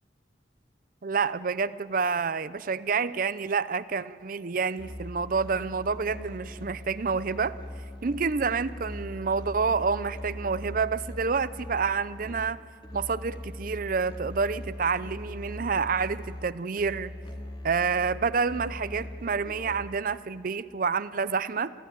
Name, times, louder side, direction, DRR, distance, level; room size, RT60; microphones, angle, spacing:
voice 1, 1.0-7.5 8.0-12.6 12.9-17.1 17.6-21.7, right 5 dB, 50° right, 15 dB, 0.6 m, -28 dB
Musical instrument, 4.8-20.1, left 1 dB, 30° left, 2.4 m, -41 dB
29.5 x 15.5 x 9.2 m, 2.1 s
head